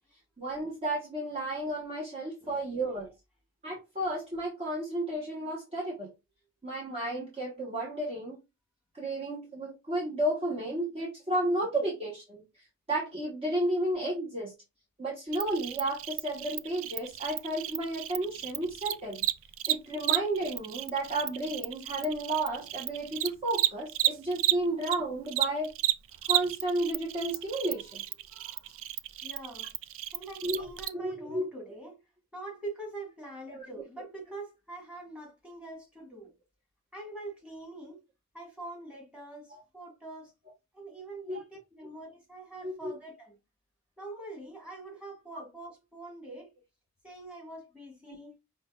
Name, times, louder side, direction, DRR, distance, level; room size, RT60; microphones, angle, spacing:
voice 1, 0.4-3.1 3.6-6.1 6.6-8.4 8.9-12.4 12.9-14.5 15.0-19.3 19.7-25.7 26.3-28.0 30.4-30.7 30.9-31.4 33.5-33.6 39.5-39.6 41.3-41.4 42.6-42.9 48.1-48.2, right 1 dB, 30° right, 1.0 m, -32 dB
Cricket, 15.3-25.0 25.3-30.9, right 14 dB, 70° right, 0.3 m, -32 dB
voice 2, 29.2-29.7 30.1-32.0 32.3-36.3 36.9-38.0 38.3-40.3 40.7-43.4 44.0-46.5 47.0-48.3, right 2 dB, 5° right, 1.8 m, -44 dB
5.1 x 2.9 x 2.4 m
head